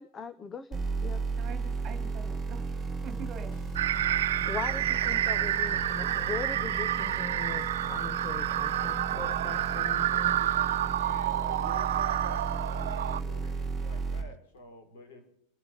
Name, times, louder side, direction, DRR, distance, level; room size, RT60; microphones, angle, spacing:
voice 1, 0.0-1.3 4.5-10.4, left 5 dB, 15° left, 15 dB, 0.5 m, -40 dB
sound 1, 0.7-14.2, right 4 dB, 5° right, 5.3 m, -35 dB
voice 2, 1.4-3.6, right 6 dB, 20° right, 4 dB, 3.0 m, -44 dB
sound 2, 3.1-10.3, left 1 dB, 40° left, 5.0 m, -49 dB
sound 3, 3.8-13.2, right 12 dB, 90° right, 0.8 m, -29 dB
voice 3, 10.2-15.3, left 1 dB, 65° left, 4 dB, 5.2 m, -48 dB
30.0 x 11.5 x 3.8 m, 0.73 s
supercardioid pair, 175°, 0 cm